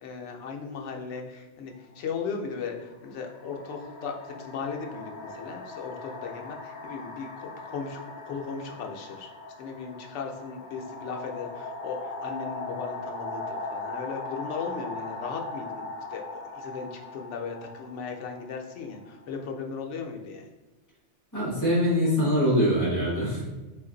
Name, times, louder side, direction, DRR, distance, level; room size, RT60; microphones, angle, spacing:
voice 1, 0.0-9.3 9.6-15.8 16.1-20.5, left 5 dB, 85° left, 2 dB, 0.9 m, -37 dB
sound 1, 1.7-1.9 2.9-19.5, left 3 dB, 50° left, 0.6 m, -39 dB
voice 2, 21.3-23.4, equal, 15° left, -7 dB, 1.2 m, -23 dB
3.1 x 2.5 x 3.7 m, 1.1 s
omnidirectional pair, 1.2 m